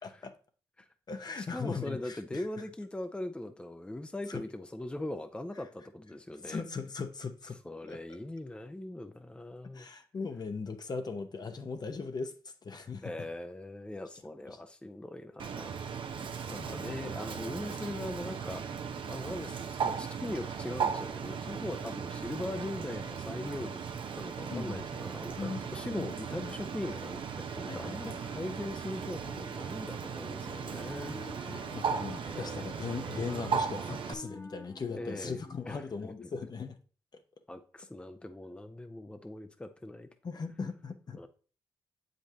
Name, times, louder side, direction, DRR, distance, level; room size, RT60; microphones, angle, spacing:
voice 1, 0.0-0.3 1.1-2.5 4.3-4.4 6.4-8.2 9.7-13.1 14.5-14.6 16.2-17.1 24.5-24.8 25.4-25.6 25.9-26.1 26.4-26.5 27.7-28.4 31.0-36.8 40.2-41.3, left 4 dB, 45° left, 7 dB, 0.9 m, -39 dB
voice 2, 1.4-6.6 7.6-9.9 13.0-15.8 16.1-18.6 19.1-23.8 24.2-31.2 32.3-32.7 35.0-35.4 35.7-36.1 37.5-40.1 41.2-41.3, left 1 dB, 10° left, 8 dB, 0.7 m, -40 dB
Bird, 15.4-34.1, right 6 dB, 65° right, 0.8 m, -37 dB
Wind instrument woodwind instrument, 30.3-36.0, left 2 dB, 25° left, 1.2 m, -50 dB
7.6 x 5.2 x 2.8 m, 0.39 s
supercardioid pair, 50°, 9 cm